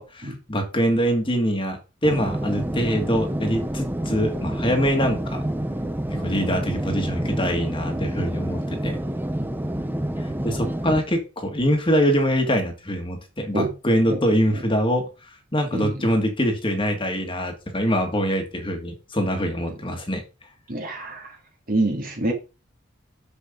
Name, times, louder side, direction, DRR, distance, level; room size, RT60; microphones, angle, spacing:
voice 1, 0.0-5.4 6.1-9.0 10.2-20.2, equal, 25° left, 3 dB, 2.1 m, -24 dB
sound 1, 2.0-11.0, right 1 dB, 10° right, 0.7 m, -28 dB
voice 2, 20.7-21.4 21.7-22.3, right 2 dB, 45° right, 1 dB, 2.8 m, -26 dB
7.2 x 6.9 x 3.9 m, 0.30 s
head